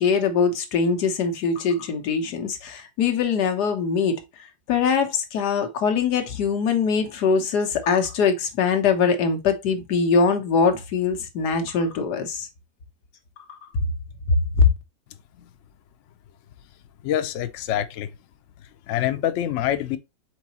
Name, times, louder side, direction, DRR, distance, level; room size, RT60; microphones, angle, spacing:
voice 1, 0.0-4.2 4.7-12.5 14.3-14.6, left 5 dB, 65° left, 1.4 m, -22 dB
voice 2, 17.0-18.2 18.6-20.0, left 11 dB, 90° left, 0.6 m, -26 dB
4.6 x 4.0 x 2.8 m
omnidirectional pair, 1.9 m